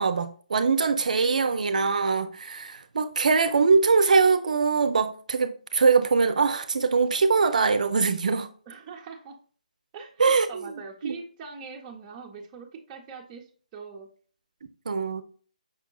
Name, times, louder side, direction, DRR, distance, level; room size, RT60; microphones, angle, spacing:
voice 1, 0.0-8.5 10.2-11.1 14.9-15.2, right 4 dB, 65° right, 0.4 m, -23 dB
voice 2, 8.7-9.4 9.9-13.4 13.7-14.1, right 5 dB, 20° right, 0.6 m, -42 dB
5.4 x 3.6 x 2.3 m
hypercardioid pair, 160°, 4 cm